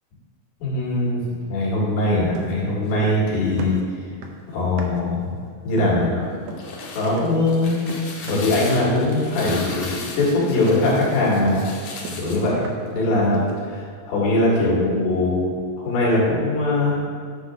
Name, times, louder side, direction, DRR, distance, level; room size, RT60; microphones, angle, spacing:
voice 1, 0.6-1.2 1.5-3.8 4.5-5.3 5.6-6.3 7.0-7.8 8.2-11.6 12.2-12.7 12.9-17.0, left 2 dB, 85° left, -5 dB, 3.7 m, -21 dB
sound 1, 2.3-3.3 3.6-5.2 5.8-6.1 6.5-6.8 7.2-7.5 7.9-8.6 8.9-9.2 9.5-9.9 10.2-10.5 10.7-13.0 13.3-13.7, right 3 dB, 75° right, 1.7 m, -36 dB
sound 2, 6.4-12.5, left 3 dB, 65° left, 1.7 m, -36 dB
9.9 x 5.9 x 3.6 m, 2.2 s
omnidirectional pair, 3.9 m